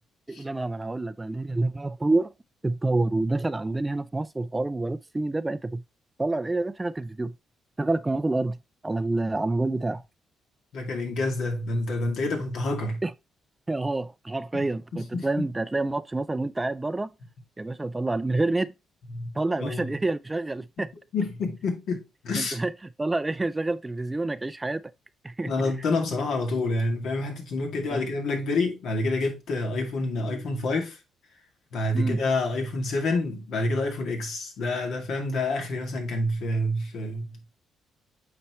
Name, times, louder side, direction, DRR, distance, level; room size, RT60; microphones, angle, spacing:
voice 1, 0.3-2.3 2.6-5.8 6.2-7.3 7.8-8.6 8.8-10.0 13.0-13.1 13.7-17.1 17.6-18.7 19.3-20.9 22.3-22.7 23.0-24.8 25.2-25.7 27.9-28.0 31.9-32.2, right 2 dB, 15° right, 0.4 m, -28 dB
voice 2, 10.7-13.0 14.5-14.6 14.9-15.5 19.1-19.3 19.6-19.9 21.1-22.6 25.5-31.0 31.7-37.4, left 2 dB, 70° left, 2.2 m, -28 dB
8.4 x 4.3 x 3.0 m
cardioid pair, 90°, 0 cm